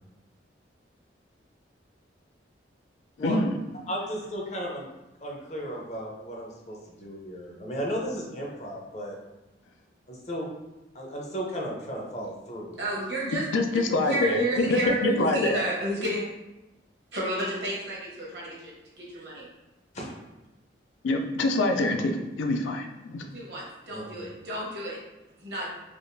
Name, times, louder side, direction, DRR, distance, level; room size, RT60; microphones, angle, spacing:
voice 1, 3.2-3.6 13.5-15.6 21.0-23.3, left 2 dB, 90° left, 4 dB, 0.4 m, -25 dB
voice 2, 3.9-4.9 5.2-9.2 10.1-10.5 10.9-12.9 19.9-20.2 23.9-24.3, equal, 35° left, -2 dB, 0.6 m, -35 dB
voice 3, 12.8-13.4 14.0-16.2 17.1-19.5 23.3-25.0 25.4-25.7, right 1 dB, 65° right, -5 dB, 1.0 m, -31 dB
3.5 x 2.4 x 2.6 m, 1.0 s
head